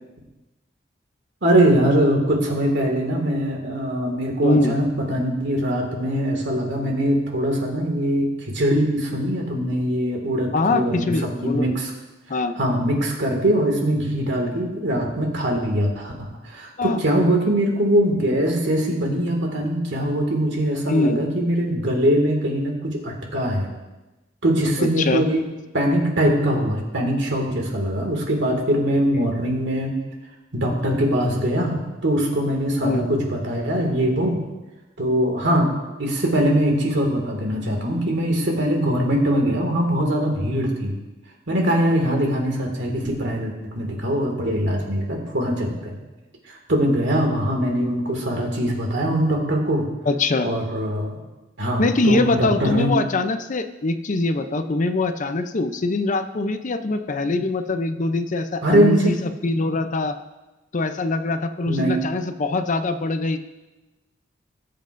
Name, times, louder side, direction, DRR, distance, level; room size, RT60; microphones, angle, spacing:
voice 1, 1.4-11.9 12.6-23.7 24.4-25.4 25.7-29.9 30.5-34.4 35.0-35.7 36.0-41.0 41.5-46.0 46.7-49.9 50.4-51.2 51.6-52.9 58.6-59.1 61.7-62.0, equal, 65° right, 1 dB, 2.1 m, -22 dB
voice 2, 4.4-4.8 10.5-11.8 12.3-12.5 16.8-17.0 20.9-21.2 24.8-25.2 29.1-29.3 32.8-33.1 50.1-50.5 51.8-60.2 60.7-63.4, left 2 dB, 40° left, 8 dB, 0.6 m, -23 dB
19.0 x 7.6 x 2.6 m, 1.1 s
head